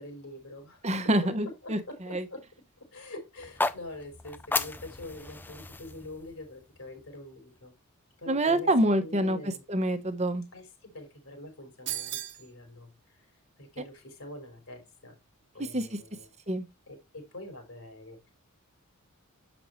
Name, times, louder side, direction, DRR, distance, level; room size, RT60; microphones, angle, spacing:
voice 1, 0.0-1.0 1.6-2.5 2.8-7.7 8.2-8.7 9.0-9.6 10.5-13.3 13.6-15.2 15.5-16.3 16.9-18.3, left 1 dB, 70° left, 3.8 m, -45 dB
voice 2, 0.8-1.8 2.1-2.2 8.3-9.4 9.7-10.4 15.7-15.9 16.5-16.6, right 1 dB, 30° right, 1.0 m, -26 dB
sound 1, 3.4-7.5, left 3 dB, 10° left, 0.4 m, -35 dB
sound 2, 11.9-12.5, right 13 dB, 55° right, 0.9 m, -35 dB
7.8 x 6.1 x 3.1 m
head